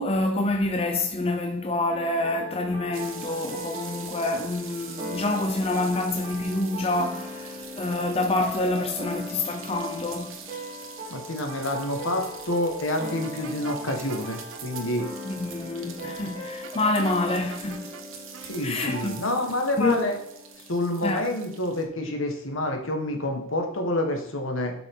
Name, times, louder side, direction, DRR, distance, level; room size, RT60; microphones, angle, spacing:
voice 1, 0.0-10.4 15.3-17.9 18.6-19.2 19.8-20.1 21.0-21.3, left 2 dB, 30° left, 0.6 m, -27 dB
sound 1, 1.9-20.9, left 1 dB, 30° right, 2.9 m, -39 dB
sound 2, 2.9-21.8, right 7 dB, 70° right, 1.3 m, -44 dB
voice 2, 11.1-15.1 18.4-20.2 20.7-24.7, left 1 dB, 70° left, 1.7 m, -28 dB
sound 3, 13.2-14.6 16.6-18.0 18.3-19.1, right 5 dB, 85° right, 0.6 m, -42 dB
8.1 x 6.0 x 3.8 m
head